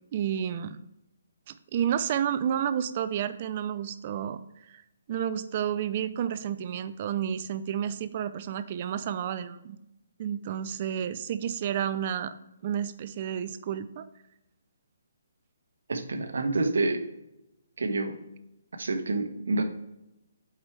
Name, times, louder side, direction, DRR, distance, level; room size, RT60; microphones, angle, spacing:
voice 1, 0.1-0.8 1.5-4.4 4.7-4.8 5.1-9.8 10.2-12.3 12.6-14.0, right 9 dB, 40° right, 13 dB, 0.4 m, -30 dB
voice 2, 15.9-17.0 17.8-18.2 18.7-19.6, right 2 dB, 80° right, 7 dB, 1.0 m, -28 dB
8.0 x 4.8 x 3.2 m, 0.91 s
hypercardioid pair, 155°, 0 cm